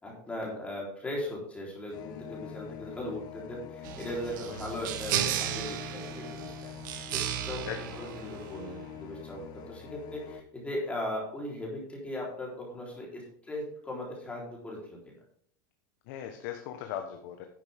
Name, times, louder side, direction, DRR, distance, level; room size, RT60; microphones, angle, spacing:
voice 1, 0.0-6.7 7.1-7.7 8.0-15.1, left 1 dB, 10° left, -3 dB, 3.8 m, -38 dB
sound 1, 1.9-10.4, left 9 dB, 40° left, 1.1 m, -45 dB
sound 2, 3.8-8.9, right 10 dB, 70° right, 1.2 m, -35 dB
voice 2, 7.7-8.2 16.1-17.4, left 9 dB, 60° left, 5 dB, 1.2 m, -39 dB
10.5 x 8.8 x 3.6 m, 0.65 s
supercardioid pair, 135°, 11 cm